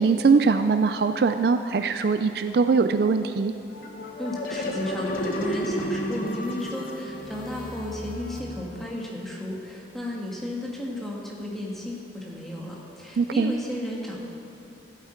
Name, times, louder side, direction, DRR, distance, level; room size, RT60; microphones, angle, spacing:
voice 1, 0.0-3.5 13.2-13.5, right 4 dB, 55° right, 9 dB, 0.3 m, -21 dB
sound 1, 3.7-9.1, equal, 50° left, 1.1 m, -32 dB
voice 2, 4.2-14.2, left 1 dB, ahead, -4 dB, 1.6 m, -34 dB
15.0 x 8.3 x 4.4 m, 2.7 s
head